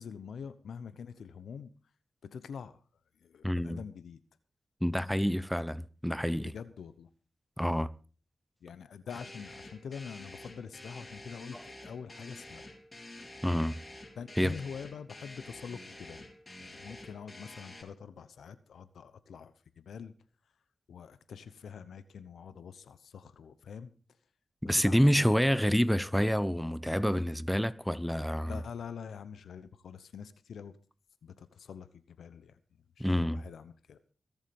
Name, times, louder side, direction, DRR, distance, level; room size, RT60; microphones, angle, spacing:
voice 1, 0.0-1.7 2.2-2.8 3.2-4.2 6.4-7.1 8.6-12.7 14.2-16.3 16.6-20.1 20.9-23.9 24.6-25.3 28.4-30.7 31.2-32.6 33.0-34.0, left 6 dB, 85° left, 1.0 m, -45 dB
voice 2, 3.4-3.8 4.8-6.5 7.6-7.9 13.4-13.8 14.4-14.5 24.6-28.6 33.0-33.4, equal, ahead, 0.9 m, -28 dB
sound 1, 9.1-17.8, left 1 dB, 30° left, 4.2 m, -49 dB
21.5 x 7.4 x 5.3 m
cardioid pair, 50°, 0 cm